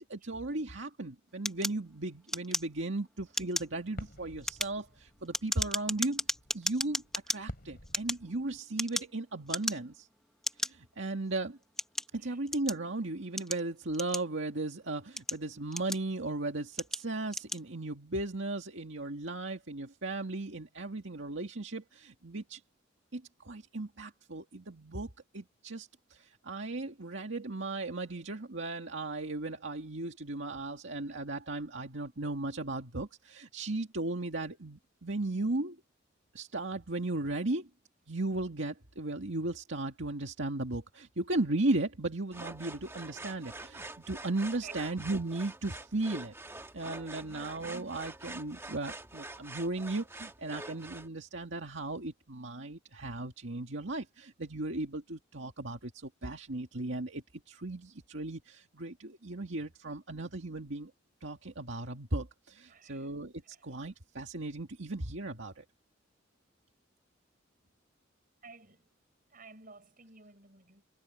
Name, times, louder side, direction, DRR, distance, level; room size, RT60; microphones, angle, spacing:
voice 1, 0.1-6.2 6.5-10.1 10.6-11.6 12.1-22.6 23.1-35.8 36.3-37.7 38.1-46.3 46.7-60.9 61.2-65.6, right 2 dB, 70° right, 2.1 m, -36 dB
sound 1, 1.5-3.0 3.3-3.8 4.3-7.4 7.9-9.2 9.5-10.0 10.4-10.7 11.4-12.9 13.4-14.5 15.0-16.2 16.7-17.0 17.3-17.6, left 1 dB, 5° left, 1.5 m, -35 dB
sound 2, 3.6-8.6, equal, 55° left, 5.9 m, -50 dB
sound 3, 42.3-51.1, right 2 dB, 15° right, 1.8 m, -46 dB
voice 2, 62.7-63.1 63.5-63.6 68.4-68.9 69.3-70.8, right 4 dB, 45° right, 6.7 m, -52 dB
head